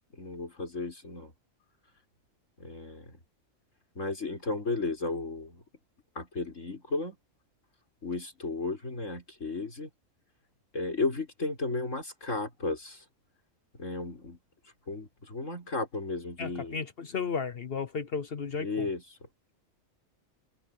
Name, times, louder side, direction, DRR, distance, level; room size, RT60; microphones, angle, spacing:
voice 1, 0.1-1.3 2.6-3.1 4.0-5.6 6.2-7.2 8.0-9.9 10.7-13.0 13.8-14.4 14.9-16.8 18.6-19.0, left 3 dB, 70° left, 5.9 m, -34 dB
voice 2, 16.4-18.9, left 5 dB, 50° left, 1.0 m, -34 dB
omnidirectional pair, 1.4 m